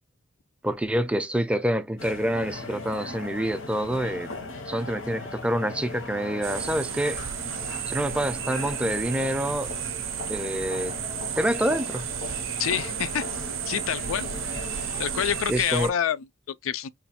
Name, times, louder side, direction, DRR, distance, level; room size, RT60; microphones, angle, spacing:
voice 1, 0.6-4.3 4.7-7.2 7.9-9.7 10.3-10.9 11.4-12.1 15.5-15.9, right 1 dB, 5° right, 0.4 m, -27 dB
sound 1, 2.0-15.4, left 2 dB, 70° left, 1.0 m, -38 dB
sound 2, 6.4-15.9, right 11 dB, 70° right, 0.5 m, -33 dB
voice 2, 12.6-13.3 13.7-14.3 15.0-16.9, left 9 dB, 85° left, 0.4 m, -27 dB
3.2 x 2.2 x 4.2 m
head